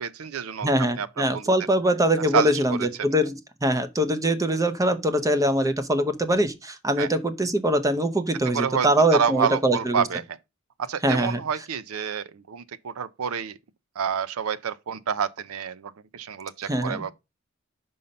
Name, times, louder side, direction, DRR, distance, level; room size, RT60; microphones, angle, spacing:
voice 1, 0.0-0.7 1.0-1.5 2.3-2.8 7.0-7.1 8.5-8.9 9.1-10.4 10.8-13.6 14.0-17.1, right 7 dB, 80° right, 0.5 m, -28 dB
voice 2, 0.6-10.0 11.0-11.4 16.6-17.0, right 1 dB, 15° right, 0.6 m, -23 dB
5.5 x 5.5 x 5.2 m
head